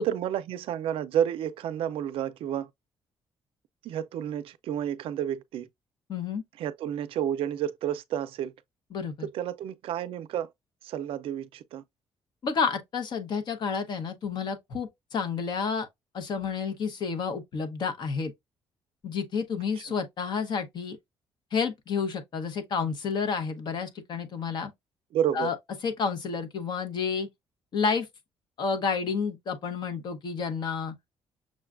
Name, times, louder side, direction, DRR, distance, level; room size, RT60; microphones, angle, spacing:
voice 1, 0.0-2.7 3.8-5.7 6.6-8.5 9.2-10.5 10.8-11.8 19.9-20.0 25.1-25.5, right 10 dB, 70° right, 0.4 m, -30 dB
voice 2, 6.1-6.4 8.9-9.3 12.4-15.9 16.1-18.3 19.0-21.0 21.5-24.7 25.3-25.6 25.8-27.3 27.7-28.1 28.6-30.9, left 5 dB, 50° left, 0.8 m, -30 dB
6.3 x 2.3 x 2.4 m
cardioid pair, 150°, 10 cm